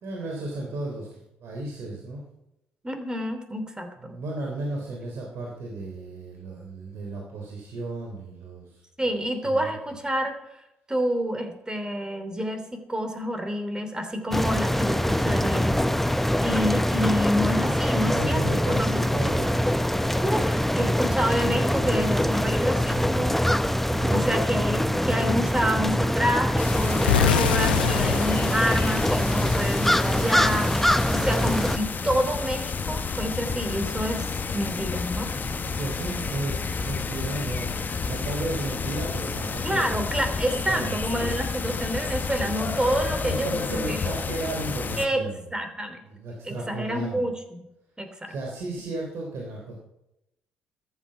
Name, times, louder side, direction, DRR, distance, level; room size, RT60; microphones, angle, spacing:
voice 1, 0.0-2.2 4.0-9.1 9.4-9.7 18.0-19.8 23.9-24.4 35.1-40.0 40.7-40.9 43.2-45.5 46.1-47.2 48.3-49.8, right 2 dB, 60° right, -1 dB, 3.5 m, -34 dB
voice 2, 2.8-4.1 9.0-10.6 10.9-15.7 16.0-19.1 20.1-23.4 24.1-34.2 34.5-35.3 39.6-44.1 45.0-45.2 45.5-46.0 46.4-47.6 48.0-48.3, equal, 15° right, 7 dB, 3.1 m, -28 dB
sound 1, 14.3-31.8, left 1 dB, 5° left, 0.7 m, -24 dB
sound 2, 26.6-45.1, left 5 dB, 35° left, 1.2 m, -30 dB
sound 3, 27.0-29.9, left 11 dB, 90° left, 0.5 m, -26 dB
13.5 x 11.5 x 5.8 m, 0.87 s
hypercardioid pair, 50°, 5 cm